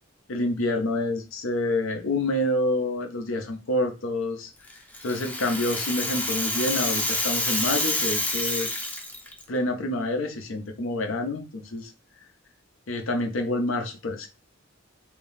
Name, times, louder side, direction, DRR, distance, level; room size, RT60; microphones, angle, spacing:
voice 1, 0.3-4.5 5.0-8.7 9.5-11.9 12.9-14.3, left 1 dB, 75° left, 4 dB, 0.6 m, -27 dB
Rattle (instrument), 4.7-9.4, left 1 dB, 10° left, 0.6 m, -28 dB
2.7 x 2.6 x 3.5 m, 0.30 s
head